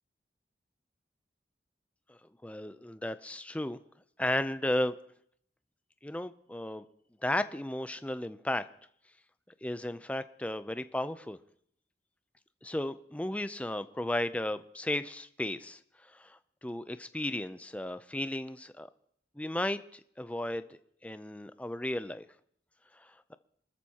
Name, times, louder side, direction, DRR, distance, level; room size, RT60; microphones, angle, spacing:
voice 1, 2.1-3.8 4.2-4.9 6.0-6.9 7.2-8.6 9.6-11.4 12.6-15.8 16.1-18.9 19.4-20.7 21.0-22.3 23.0-23.3, left 1 dB, 10° left, 12 dB, 0.5 m, -34 dB
27.5 x 13.5 x 2.9 m, 0.66 s
head